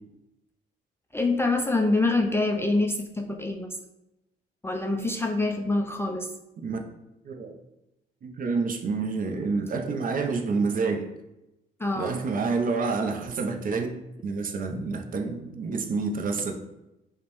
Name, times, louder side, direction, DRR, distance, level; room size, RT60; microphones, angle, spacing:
voice 1, 1.1-3.7 4.6-6.3 11.8-12.2, left 2 dB, 10° left, 2 dB, 0.3 m, -25 dB
voice 2, 8.2-11.1 12.0-13.9 14.2-16.5, right 4 dB, 45° right, 4 dB, 0.5 m, -28 dB
4.9 x 2.1 x 2.9 m, 0.92 s
cardioid pair, 90°, 20 cm